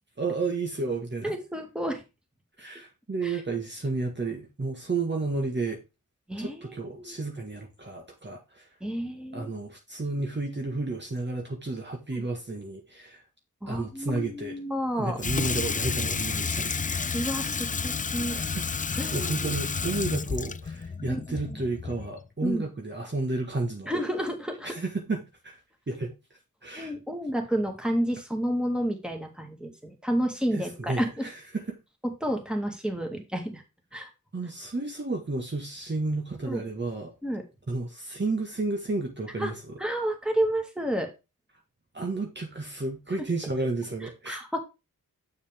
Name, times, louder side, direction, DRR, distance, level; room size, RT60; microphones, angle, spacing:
voice 1, 0.2-1.3 2.6-5.8 6.4-8.7 9.3-13.2 13.7-14.6 15.0-17.1 18.2-23.9 24.6-25.6 25.9-26.1 26.6-26.9 30.5-31.8 34.3-37.1 37.7-39.8 41.9-44.4, right 3 dB, 35° right, 1.6 m, -32 dB
voice 2, 1.2-2.0 3.2-3.4 6.3-7.1 8.8-9.5 12.1-12.2 13.6-15.2 17.1-18.4 19.0-19.6 21.1-21.2 22.4-22.6 23.9-24.7 26.8-31.1 32.2-33.6 33.9-34.1 36.4-36.6 37.2-37.4 39.4-39.5 39.8-41.1 44.3-44.6, equal, 5° right, 2.3 m, -30 dB
Water tap faucet / Sink (filling or washing), 15.2-22.2, left 5 dB, 25° left, 0.3 m, -31 dB
7.1 x 6.4 x 3.6 m
wide cardioid pair, 70°, 33 cm